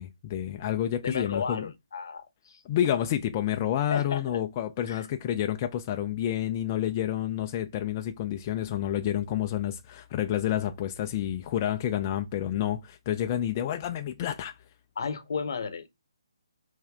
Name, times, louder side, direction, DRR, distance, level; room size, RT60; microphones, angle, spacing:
voice 1, 0.0-1.7 2.7-14.5, left 11 dB, 30° left, 0.4 m, -29 dB
voice 2, 1.0-2.6 3.9-4.2 4.9-5.0 15.0-15.9, left 5 dB, 55° left, 0.8 m, -33 dB
5.6 x 2.7 x 3.4 m
figure-of-eight pair, 145°, 3 cm